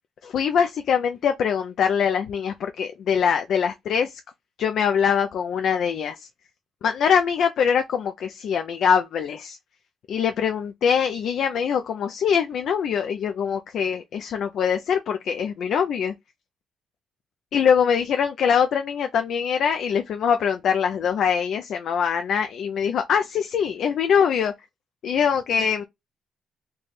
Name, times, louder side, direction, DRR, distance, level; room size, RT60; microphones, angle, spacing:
voice 1, 0.2-4.2 4.6-6.3 6.8-9.6 10.1-16.1 17.5-24.5 25.0-25.8, left 7 dB, 70° left, 0.3 m, -23 dB
3.1 x 2.2 x 4.0 m
cardioid pair, 90°, 0 cm